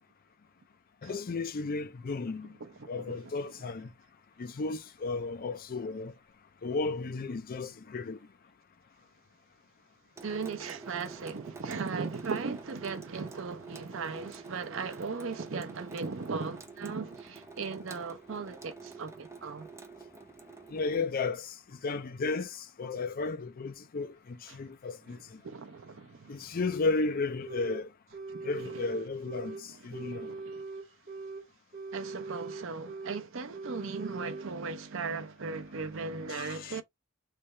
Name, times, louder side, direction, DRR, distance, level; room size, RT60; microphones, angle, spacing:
voice 1, 1.0-2.5 2.9-3.9 4.4-6.1 6.6-8.2 20.7-21.5 21.8-25.4 26.3-27.9 28.4-30.3 36.3-36.8, left 3 dB, 45° left, 0.4 m, -34 dB
voice 2, 2.6-3.3 10.2-19.7 24.5-24.6 25.1-25.2 25.4-26.6 28.3-28.8 29.5-29.6 29.9-30.6 31.9-36.8, right 4 dB, 65° right, 0.6 m, -38 dB
Water tap faucet / Sink (filling or washing) / Drip, 10.2-21.0, right 4 dB, 15° right, 0.6 m, -48 dB
sound 1, 27.5-27.8 28.1-29.6 29.9-31.4 31.7-33.2 33.5-34.5, right 3 dB, 45° right, 1.7 m, -41 dB
3.4 x 2.7 x 3.1 m
head